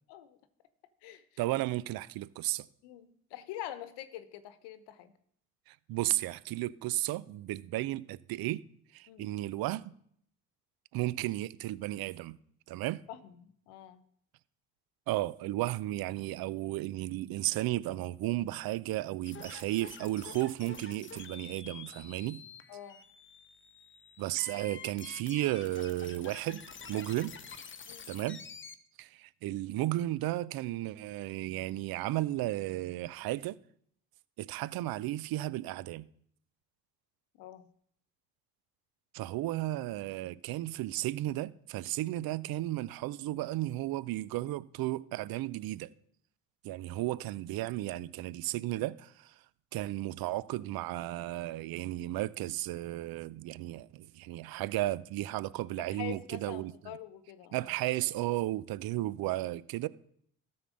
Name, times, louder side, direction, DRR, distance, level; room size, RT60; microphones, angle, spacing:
voice 1, 1.4-2.7 5.7-8.6 8.9-9.9 10.9-12.4 12.7-13.0 15.1-22.4 24.2-27.4 28.1-28.4 29.0-33.6 34.4-36.1 39.1-45.9 46.6-49.3 49.7-56.7 57.5-59.9, right 16 dB, 60° right, 0.6 m, -34 dB
voice 2, 2.8-5.1 9.1-9.3 13.1-14.0 22.7-23.0 27.8-28.1 37.4-37.6 55.9-57.7, left 12 dB, 75° left, 1.0 m, -45 dB
sound 1, 19.3-28.7, left 6 dB, 30° left, 0.9 m, -48 dB
13.0 x 4.4 x 6.3 m
hypercardioid pair, 60°, 41 cm